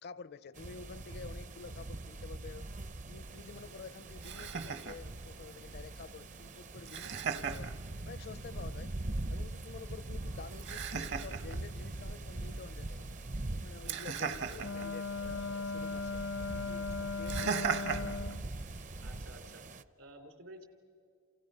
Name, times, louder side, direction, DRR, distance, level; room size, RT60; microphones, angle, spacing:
voice 1, 0.0-2.7 3.1-7.7 8.1-8.9 9.3-13.2 13.5-16.2 16.7-17.8, left 5 dB, 50° left, 0.5 m, -50 dB
sound 1, 0.6-19.8, right 2 dB, 35° right, 0.6 m, -42 dB
Laughter, 3.2-19.2, right 6 dB, 60° right, 1.1 m, -41 dB
Wind instrument woodwind instrument, 14.6-18.5, left 4 dB, 85° left, 1.0 m, -38 dB
voice 2, 19.0-19.6 20.0-20.6, right 1 dB, 75° right, 3.3 m, -52 dB
29.0 x 28.5 x 5.6 m
head